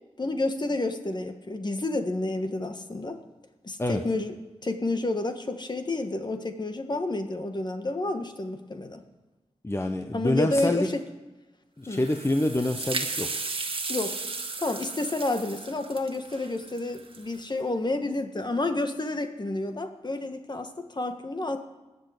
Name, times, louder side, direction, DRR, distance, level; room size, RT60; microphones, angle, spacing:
voice 1, 0.2-3.2 3.6-4.4 4.6-9.0 10.1-11.0 11.9-12.0 13.9-14.2 14.6-21.6, left 2 dB, 40° left, 7 dB, 1.6 m, -30 dB
voice 2, 9.6-10.9 11.8-13.3, left 1 dB, 20° left, 5 dB, 1.1 m, -26 dB
sound 1, 11.9-17.4, right 3 dB, 50° right, 1.6 m, -35 dB
19.0 x 7.0 x 8.5 m, 1.1 s
cardioid pair, 45°, 11 cm